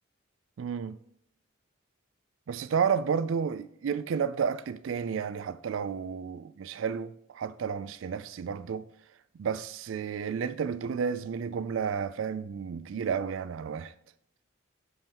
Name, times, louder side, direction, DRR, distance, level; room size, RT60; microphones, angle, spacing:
voice 1, 0.6-1.0 2.5-8.9 9.4-13.9, right 6 dB, 75° right, 0.3 m, -31 dB
7.0 x 5.5 x 3.0 m
head